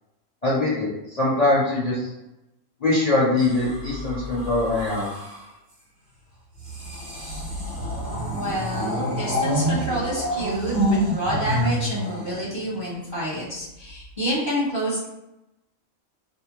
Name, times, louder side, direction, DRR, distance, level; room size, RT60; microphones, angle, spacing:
voice 1, 0.4-2.0 2.8-5.1, left 2 dB, 40° left, -8 dB, 0.6 m, -22 dB
sound 1, 3.4-5.5 6.6-13.0 13.9-14.2, equal, 45° right, 1.0 m, -28 dB
voice 2, 8.2-15.1, equal, 25° right, -8 dB, 0.7 m, -28 dB
2.6 x 2.1 x 3.0 m, 0.93 s
omnidirectional pair, 1.3 m